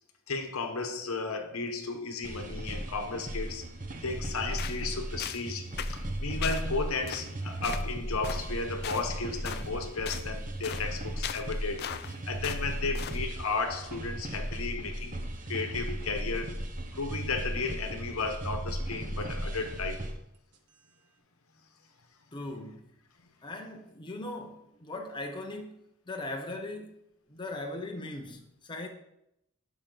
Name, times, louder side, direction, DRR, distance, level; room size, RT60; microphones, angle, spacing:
voice 1, 0.3-3.6 4.0-15.2 15.5-16.6 16.9-20.1, left 4 dB, 65° left, 1.2 m, -34 dB
sound 1, 2.2-20.1, right 1 dB, 35° right, 1.0 m, -36 dB
sound 2, 4.6-4.8 5.2-5.5 5.8-6.0 6.4-6.6 7.1-7.3 7.6-7.8 8.2-8.4 8.8-9.1 9.4-9.7 10.0-10.3 10.6-10.8 11.2-12.1 12.4-12.7 12.9-13.2, left 9 dB, 45° left, 0.4 m, -38 dB
sound 3, 11.2-11.3 12.5-12.6 13.2-14.5 15.0-15.6 16.5-16.6 17.9-18.0 18.5-19.8 20.3-20.9, right 3 dB, 85° right, 0.9 m, -47 dB
voice 2, 22.3-22.9 23.4-27.0 27.3-28.9, left 2 dB, 20° left, 0.8 m, -39 dB
11.0 x 6.1 x 3.9 m
head